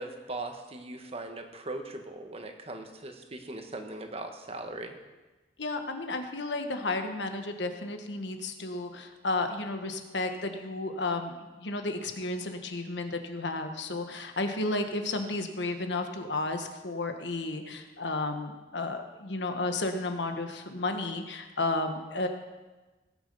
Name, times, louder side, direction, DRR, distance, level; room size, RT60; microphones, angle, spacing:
voice 1, 0.0-5.0, right 2 dB, 35° right, 5 dB, 1.3 m, -39 dB
voice 2, 5.6-22.3, left 2 dB, 75° left, 6 dB, 1.4 m, -32 dB
18.5 x 8.6 x 5.5 m, 1.2 s
head